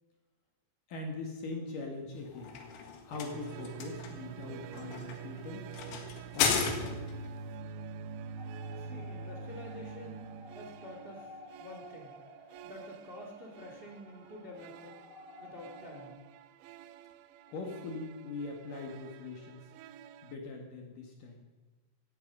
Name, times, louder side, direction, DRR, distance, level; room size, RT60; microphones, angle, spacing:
voice 1, 0.9-2.6 3.0-5.7 6.3-7.1 17.5-19.7 20.2-21.4, left 3 dB, 60° left, 1 dB, 2.4 m, -41 dB
sound 1, 2.1-7.3, left 6 dB, 85° left, 4.5 m, -35 dB
sound 2, 3.3-20.3, right 6 dB, 90° right, 2.5 m, -47 dB
sound 3, 8.4-16.1, left 1 dB, 30° left, 8.6 m, -54 dB
voice 2, 8.7-12.2 12.6-15.1 15.4-16.2, left 1 dB, 65° right, 1 dB, 0.5 m, -48 dB
17.0 x 15.5 x 5.5 m, 1.2 s
omnidirectional pair, 5.9 m